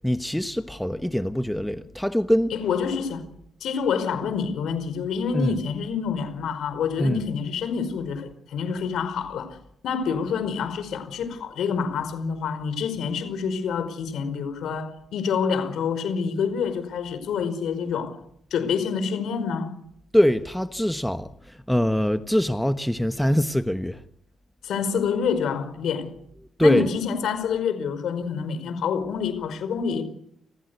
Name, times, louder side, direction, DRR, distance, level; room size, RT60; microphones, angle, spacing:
voice 1, 0.0-2.6 5.3-5.6 7.0-7.2 20.1-24.0 26.4-26.9, equal, 5° left, 1.2 m, -23 dB
voice 2, 2.5-3.2 3.6-9.6 9.8-18.2 18.5-19.7 24.6-26.1 26.6-30.0, left 6 dB, 70° left, 5.0 m, -27 dB
29.5 x 15.5 x 8.3 m
cardioid pair, 90°, 0 cm